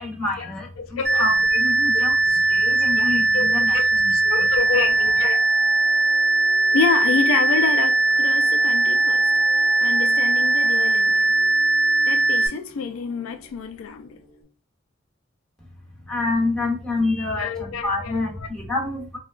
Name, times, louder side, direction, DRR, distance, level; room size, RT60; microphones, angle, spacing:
voice 1, 0.0-4.5 15.6-19.2, left 2 dB, 5° left, 1.1 m, -28 dB
voice 2, 0.8-1.2 1.9-2.0 2.7-3.0 3.3-5.4 6.7-9.3 9.8-11.3 12.0-14.2 17.4-18.3, left 5 dB, 80° left, 0.4 m, -28 dB
sound 1, 1.0-12.5, right 3 dB, 50° right, 0.7 m, -19 dB
sound 2, 4.6-14.4, equal, 35° left, 1.1 m, -44 dB
3.7 x 2.2 x 2.4 m
head